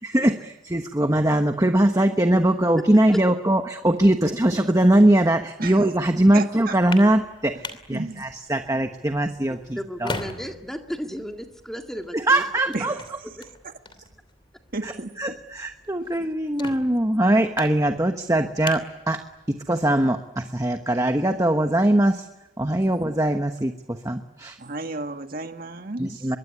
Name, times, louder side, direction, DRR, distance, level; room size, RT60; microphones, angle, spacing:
voice 1, 0.1-10.2 12.1-12.9 14.8-14.9 15.2-19.2 19.5-22.2 22.6-24.6 26.0-26.4, right 1 dB, 15° right, 6 dB, 1.1 m, -21 dB
voice 2, 6.3-6.8 7.9-8.2 12.7-12.9 14.7-15.3 22.8-22.9 24.6-26.3, right 3 dB, 45° right, 6 dB, 1.7 m, -33 dB
sound 1, 6.6-19.7, left 3 dB, 25° left, 2.9 m, -42 dB
voice 3, 9.7-12.9, equal, ahead, 3 dB, 2.1 m, -34 dB
24.5 x 22.5 x 9.8 m, 0.97 s
head